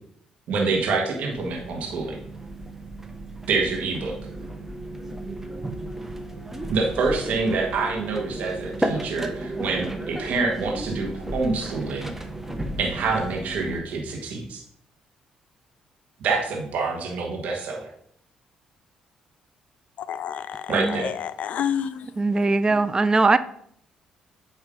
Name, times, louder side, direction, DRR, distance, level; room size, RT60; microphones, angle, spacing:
voice 1, 0.5-2.2 3.5-4.1 6.7-12.1 12.8-14.6 16.2-17.9 20.7-21.1, right 4 dB, 70° right, 0 dB, 1.6 m, -26 dB
sound 1, 1.3-13.8, right 1 dB, 10° right, 1.2 m, -34 dB
voice 2, 20.0-22.1, left 8 dB, 65° left, 15 dB, 0.5 m, -29 dB
voice 3, 20.7-21.1 22.2-23.4, right 3 dB, 30° right, 13 dB, 0.5 m, -20 dB
8.7 x 3.2 x 5.1 m, 0.67 s
supercardioid pair, 55°, 3 cm